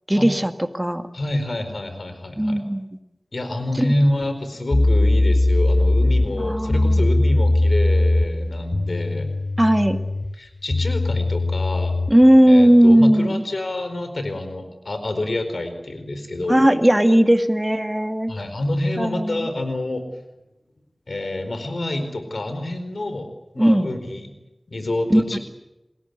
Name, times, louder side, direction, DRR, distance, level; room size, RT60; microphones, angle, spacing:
voice 1, 0.1-1.0 2.4-2.8 3.8-3.9 6.4-7.0 9.6-10.0 12.1-13.4 16.5-18.3 19.0-19.5 23.6-23.9 25.1-25.4, equal, 15° right, 8 dB, 2.0 m, -17 dB
voice 2, 1.1-2.6 3.3-9.3 10.4-12.0 12.5-16.7 18.3-20.0 21.1-23.3 23.5-24.3 24.7-25.4, left 1 dB, 90° left, 8 dB, 4.5 m, -27 dB
sound 1, 4.7-12.2, left 2 dB, 55° left, 2.1 m, -20 dB
29.0 x 20.5 x 8.3 m, 0.97 s
wide cardioid pair, 45°, 0 cm